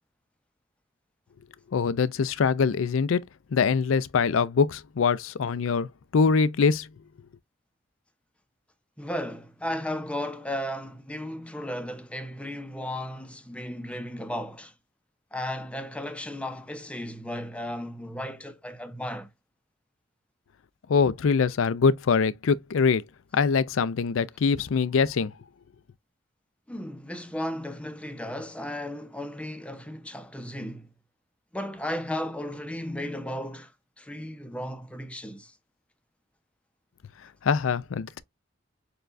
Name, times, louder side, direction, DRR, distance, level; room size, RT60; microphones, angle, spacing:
voice 1, 1.7-3.2 3.5-6.9 20.9-23.0 23.3-25.3 37.4-38.2, left 5 dB, 75° left, 0.4 m, -23 dB
voice 2, 9.0-14.7 15.3-19.3 26.7-30.9 31.5-33.7 34.0-35.6, left 1 dB, 5° left, 0.5 m, -35 dB
6.7 x 2.3 x 2.5 m
head